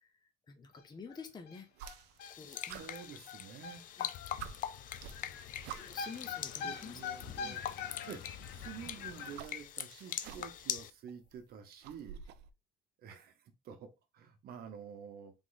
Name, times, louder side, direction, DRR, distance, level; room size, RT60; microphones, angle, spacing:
voice 1, 0.0-1.9 2.4-2.8 4.0-4.1 5.2-5.4 5.8-7.6 10.3-10.4, left 5 dB, 25° left, 0.8 m, -50 dB
sound 1, 0.8-0.9 1.1-1.2 1.5-9.4, left 6 dB, 75° left, 0.7 m, -44 dB
sound 2, 1.7-2.3 2.7-3.7 4.1-4.2 4.4-6.2 7.2-7.3 8.7-10.7 11.1-12.5, right 10 dB, 85° right, 0.4 m, -50 dB
sound 3, 2.2-10.9, left 10 dB, 50° left, 0.4 m, -43 dB
voice 2, 2.4-3.9 6.6-7.6 8.0-12.2 13.0-15.3, right 7 dB, 65° right, 0.9 m, -49 dB
3.6 x 3.1 x 4.0 m
cardioid pair, 110°, 17 cm